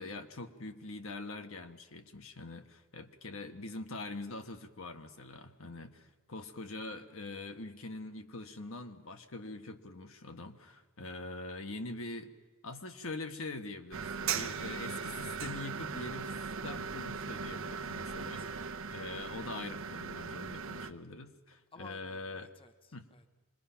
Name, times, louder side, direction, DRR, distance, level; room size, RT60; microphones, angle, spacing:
voice 1, 0.0-12.3 12.6-22.5 22.9-23.1, left 2 dB, 75° left, 6 dB, 1.4 m, -44 dB
sound 1, 13.9-20.9, right 6 dB, 65° right, 0.8 m, -39 dB
voice 2, 18.1-18.5 21.7-23.3, left 4 dB, 25° left, 8 dB, 0.8 m, -56 dB
25.5 x 21.5 x 5.8 m, 1.2 s
head